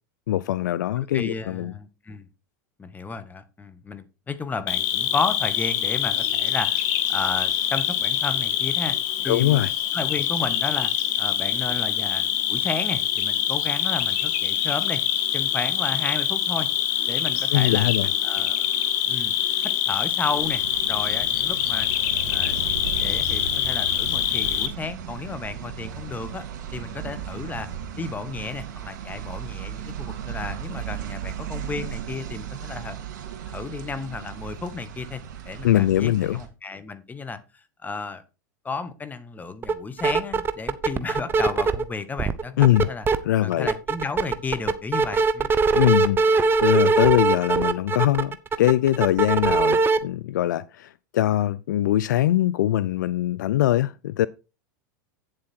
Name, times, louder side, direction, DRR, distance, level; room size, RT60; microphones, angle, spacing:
voice 1, 0.3-1.7 9.2-9.7 17.5-18.1 35.6-36.4 42.6-42.9 43.2-43.7 45.8-54.3, left 13 dB, 75° left, 0.4 m, -22 dB
voice 2, 1.1-2.3 2.8-9.0 9.2-10.9 11.2-15.0 15.3-16.7 17.1-17.9 18.2-18.7 19.1-19.3 19.8-20.6 20.9-21.9 22.3-26.4 26.7-27.7 28.0-33.0 33.4-38.2 38.6-43.0 43.4-45.5, left 4 dB, 15° left, 1.5 m, -33 dB
Cricket, 4.7-24.7, left 11 dB, 60° left, 1.4 m, -25 dB
sound 1, 20.3-36.5, right 9 dB, 70° right, 2.7 m, -36 dB
sound 2, 39.6-39.7 40.0-41.8 42.2-43.2 43.5-50.0, right 4 dB, 20° right, 0.8 m, -21 dB
8.7 x 7.6 x 4.4 m
hypercardioid pair, 100°, 10 cm